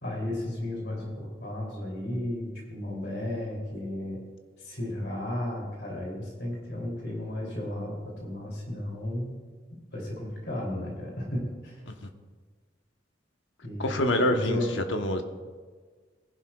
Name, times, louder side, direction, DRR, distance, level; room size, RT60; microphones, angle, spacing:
voice 1, 0.0-4.2 4.6-9.3 9.9-11.8 13.6-14.7, left 1 dB, 65° left, -2 dB, 3.0 m, -34 dB
voice 2, 13.8-15.2, left 1 dB, 85° left, 5 dB, 1.1 m, -26 dB
20.5 x 11.0 x 2.4 m, 1.5 s
head